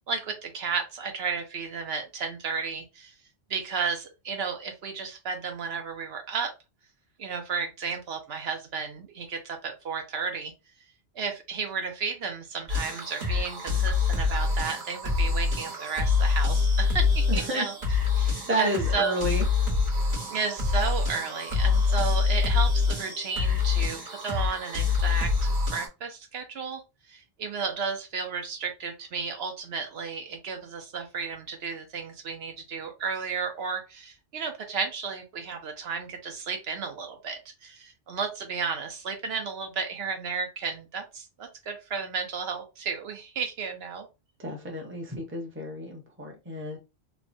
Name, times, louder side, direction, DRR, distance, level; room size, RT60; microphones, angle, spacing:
voice 1, 0.1-3.1 3.5-6.5 7.2-10.5 11.1-17.7 18.1-19.2 20.3-26.8 27.1-44.1, right 5 dB, 70° right, 4 dB, 0.8 m, -33 dB
sound 1, 12.7-25.9, left 4 dB, 40° right, 1.2 m, -25 dB
voice 2, 17.3-17.6 18.5-19.5 44.4-46.8, right 1 dB, 15° right, 1 dB, 0.6 m, -31 dB
3.1 x 2.1 x 2.6 m, 0.27 s
omnidirectional pair, 1.1 m